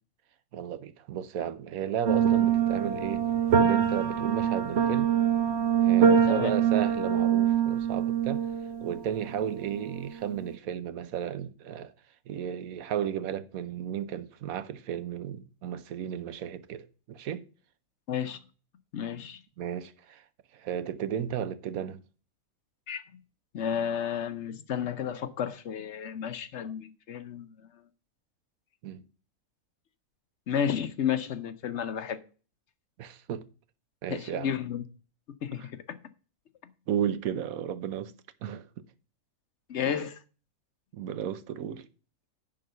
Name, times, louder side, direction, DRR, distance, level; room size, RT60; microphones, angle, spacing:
voice 1, 0.5-3.2 3.6-5.1 5.8-8.5 8.8-11.9 12.3-17.4 19.6-20.2 20.5-22.0 28.8-29.0 33.0-33.4 34.0-34.5 35.6-35.7 36.9-38.1 38.4-38.6 40.9-41.9, right 9 dB, 80° right, 1.2 m, -34 dB
sound 1, 2.0-10.4, right 8 dB, 55° right, 0.9 m, -25 dB
voice 2, 18.1-18.4 18.9-19.4 22.9-23.0 23.5-27.5 30.5-32.2 34.1-34.8 35.4-36.0 39.7-40.2, left 8 dB, 60° left, 0.9 m, -32 dB
10.5 x 3.8 x 6.6 m
omnidirectional pair, 1.5 m